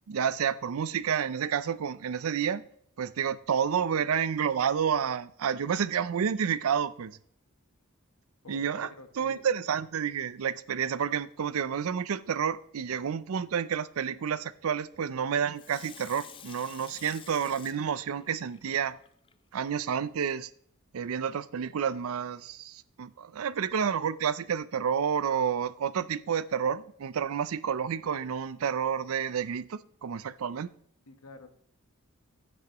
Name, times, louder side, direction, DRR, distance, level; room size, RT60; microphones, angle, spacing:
voice 1, 0.1-2.6 3.0-7.2 8.5-8.9 9.2-19.0 19.5-20.5 20.9-30.7, right 7 dB, 75° right, 0.4 m, -30 dB
voice 2, 8.4-9.4 31.1-31.5, left 3 dB, 85° left, 1.2 m, -49 dB
Water tap faucet / Sink (filling or washing), 15.5-19.3 19.8-19.9, left 8 dB, 25° left, 0.4 m, -50 dB
11.5 x 9.6 x 3.0 m
head